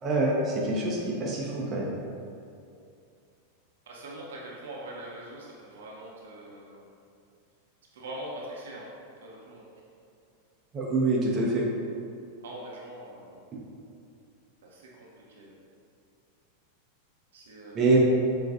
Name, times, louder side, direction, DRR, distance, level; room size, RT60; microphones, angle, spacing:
voice 1, 0.0-1.9 10.7-11.7 17.7-18.0, right 2 dB, 25° right, -4 dB, 0.6 m, -25 dB
voice 2, 3.9-6.8 7.9-8.9 9.2-9.7 12.4-13.4 14.6-15.1 15.4-15.5 17.3-18.0, right 1 dB, 60° right, -4 dB, 0.7 m, -42 dB
6.0 x 2.5 x 2.5 m, 2.5 s
figure-of-eight pair, 90°, 0 cm